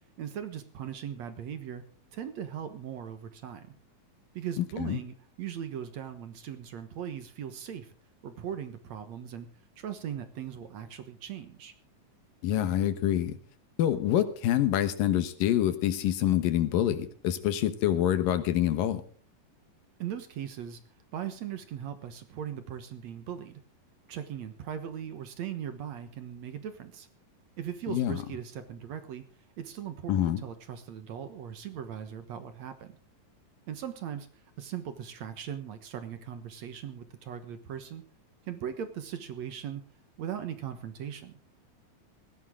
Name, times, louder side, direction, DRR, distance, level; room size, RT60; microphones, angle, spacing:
voice 1, 0.2-1.8 2.1-3.7 4.3-7.9 8.2-9.5 9.8-11.7 20.0-20.8 21.1-23.6 24.1-27.1 27.6-29.2 29.6-33.0 33.7-34.3 34.6-38.0 38.5-39.8 40.2-41.4, right 9 dB, 60° right, 10 dB, 2.2 m, -39 dB
voice 2, 4.6-5.0 12.4-13.4 13.8-19.0 27.9-28.2 30.1-30.4, left 11 dB, 80° left, 11 dB, 2.9 m, -26 dB
19.5 x 16.0 x 3.8 m, 0.40 s
omnidirectional pair, 4.0 m